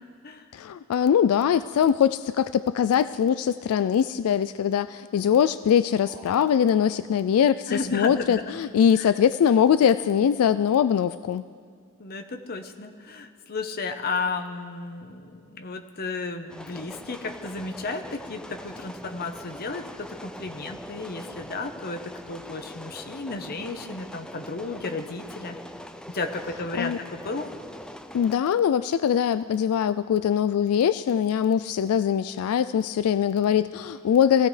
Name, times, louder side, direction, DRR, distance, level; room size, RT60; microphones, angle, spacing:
voice 1, 0.5-11.4 26.7-27.0 28.1-34.5, left 8 dB, 80° left, 15 dB, 0.3 m, -22 dB
sound 1, 5.9-7.4, left 1 dB, 25° right, 5.2 m, -50 dB
voice 2, 7.7-8.6 9.0-9.1 12.0-25.6 26.1-27.5, left 3 dB, 45° left, 6 dB, 0.9 m, -33 dB
sound 2, 16.5-28.4, equal, 5° left, 0.4 m, -42 dB
22.0 x 15.5 x 3.2 m, 2.1 s
head